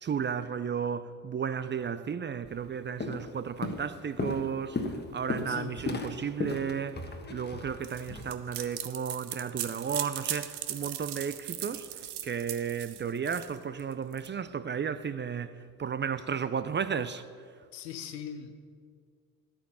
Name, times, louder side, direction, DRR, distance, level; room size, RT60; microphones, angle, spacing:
voice 1, 0.0-7.0 7.3-11.9 12.2-17.3, right 7 dB, 25° right, 0.4 m, -33 dB
Walk footsteps, 2.5-2.7 3.0-3.3 3.6-8.2, left 3 dB, 20° left, 1.3 m, -35 dB
voice 2, 5.5-5.9 17.7-18.5, left 8 dB, 90° left, 0.8 m, -40 dB
sound 1, 7.8-14.3, right 12 dB, 55° right, 0.9 m, -38 dB
11.5 x 8.5 x 5.6 m
hypercardioid pair, 50°, 49 cm